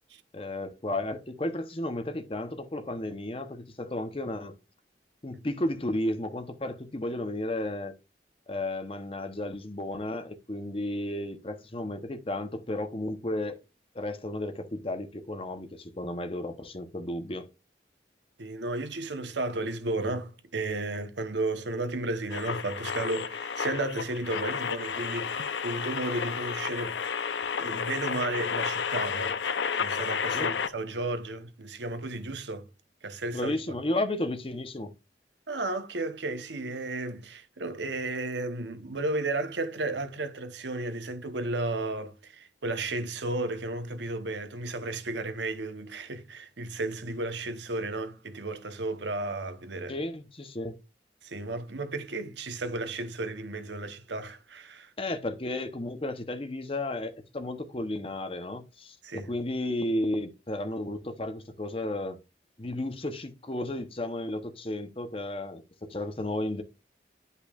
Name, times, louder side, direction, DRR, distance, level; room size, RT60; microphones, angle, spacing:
voice 1, 0.3-4.6 5.2-7.9 8.5-13.6 13.9-17.5 30.3-30.5 33.3-34.9 49.9-50.7 55.0-62.2 62.6-66.6, left 1 dB, 30° left, 0.9 m, -33 dB
voice 2, 18.4-27.0 27.6-32.7 33.0-33.6 35.5-50.0 51.2-54.9 59.0-59.3, right 2 dB, 80° right, 1.0 m, -33 dB
sound 1, 22.3-30.7, left 6 dB, 85° left, 0.6 m, -31 dB
10.5 x 5.5 x 2.4 m
head